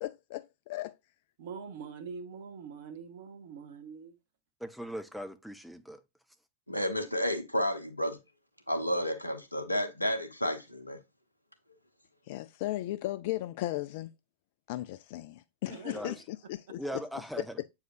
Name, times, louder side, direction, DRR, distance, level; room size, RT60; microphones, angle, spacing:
voice 1, 0.0-0.9 12.3-14.1 14.7-16.8, left 16 dB, 50° left, 0.3 m, -36 dB
voice 2, 1.4-4.1 15.7-16.1, right 6 dB, 55° right, 1.0 m, -44 dB
voice 3, 4.6-6.0 15.9-16.2 16.8-17.6, equal, ahead, 0.7 m, -39 dB
voice 4, 6.7-8.2 8.7-11.0, equal, 85° left, 0.9 m, -31 dB
7.8 x 4.7 x 2.6 m
figure-of-eight pair, 90°, 0 cm